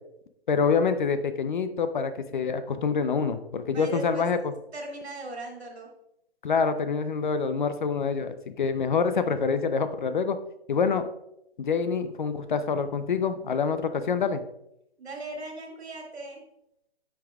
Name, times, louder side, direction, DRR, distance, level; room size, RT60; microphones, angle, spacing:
voice 1, 0.5-4.5 6.4-10.4 10.7-11.1 11.6-14.4, left 5 dB, 50° left, 10 dB, 0.6 m, -26 dB
voice 2, 3.6-4.3 4.7-5.9 15.0-16.4, right 2 dB, 75° right, 1 dB, 2.4 m, -38 dB
9.8 x 5.8 x 2.3 m, 0.80 s
hypercardioid pair, 160°, 32 cm